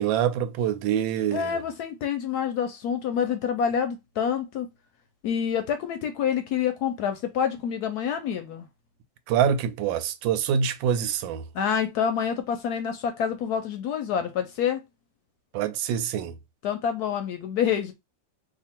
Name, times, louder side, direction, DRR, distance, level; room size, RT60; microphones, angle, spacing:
voice 1, 0.0-1.6 9.3-11.4 15.5-16.3, right 8 dB, 85° right, 1.3 m, -25 dB
voice 2, 1.3-4.7 5.2-8.7 11.5-14.8 16.6-17.9, left 8 dB, 70° left, 1.0 m, -27 dB
2.8 x 2.5 x 4.2 m
omnidirectional pair, 2.0 m